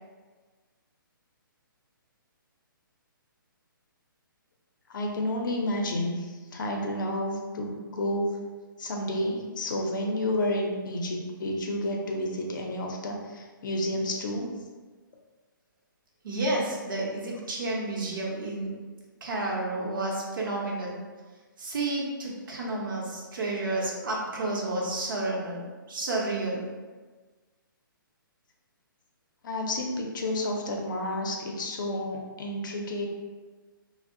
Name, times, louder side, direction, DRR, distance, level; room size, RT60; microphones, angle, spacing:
voice 1, 4.9-8.3 8.8-14.5 29.4-33.1, left 1 dB, 60° left, 1 dB, 0.5 m, -30 dB
voice 2, 16.2-18.8 19.2-21.0 21.6-26.7, right 2 dB, 65° right, -3 dB, 0.7 m, -31 dB
2.6 x 2.0 x 2.5 m, 1.4 s
hypercardioid pair, 150°, 12 cm